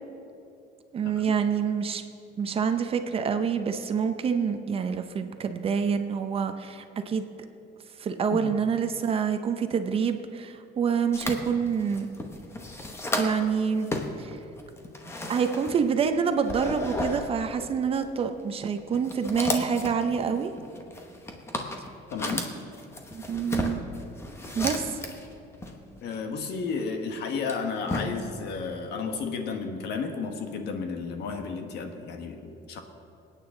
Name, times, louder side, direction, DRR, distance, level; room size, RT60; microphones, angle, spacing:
voice 1, 0.9-2.0 2.4-7.3 8.0-12.1 13.2-13.9 14.2-14.4 15.3-20.5 23.1-23.8 24.5-25.0, right 6 dB, 30° right, 8 dB, 0.6 m, -27 dB
sound 1, 11.1-13.5 13.8-16.1 16.4-17.3 18.0-18.1 18.8-25.3 25.6-26.8 27.3-28.4, left 1 dB, 15° left, 1.0 m, -34 dB
voice 2, 22.1-22.5 26.0-32.8, left 5 dB, 60° left, 5 dB, 1.4 m, -32 dB
26.5 x 9.1 x 3.8 m, 2.7 s
cardioid pair, 170°, 19 cm